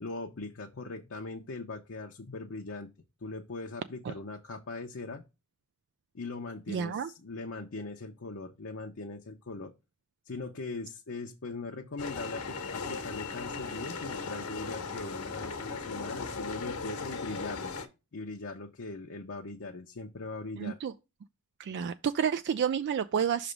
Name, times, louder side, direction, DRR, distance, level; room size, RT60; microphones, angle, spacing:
voice 1, 0.0-2.9 3.2-5.2 6.1-9.7 10.3-17.8 18.1-20.8, left 3 dB, 60° left, 0.7 m, -40 dB
voice 2, 6.7-7.1 20.6-20.9 21.6-23.5, right 7 dB, 50° right, 0.3 m, -30 dB
sound 1, 12.0-17.9, left 4 dB, 80° left, 1.2 m, -37 dB
5.9 x 3.3 x 5.1 m
head